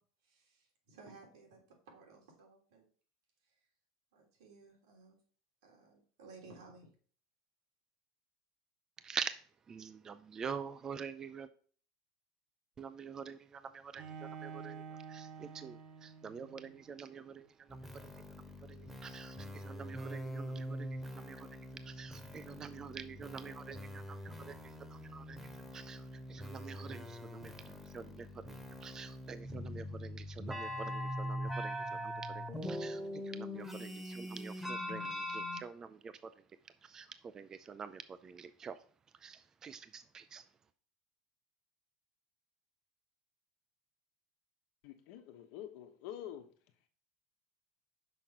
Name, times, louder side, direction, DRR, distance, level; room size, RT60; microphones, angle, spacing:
voice 1, 0.0-2.9 3.4-3.7 4.1-5.2 5.6-6.9, right 3 dB, 90° right, 3.1 m, -58 dB
voice 2, 9.7-11.5 12.8-36.4 36.8-38.8 39.2-40.4, right 6 dB, 25° right, 0.4 m, -47 dB
Bowed string instrument, 14.0-16.9, right 6 dB, 50° right, 1.3 m, -49 dB
sound 1, 17.7-35.6, equal, 5° right, 1.1 m, -43 dB
voice 3, 44.8-46.5, left 11 dB, 70° left, 1.2 m, -47 dB
6.0 x 4.6 x 5.9 m
supercardioid pair, 125°, 2 cm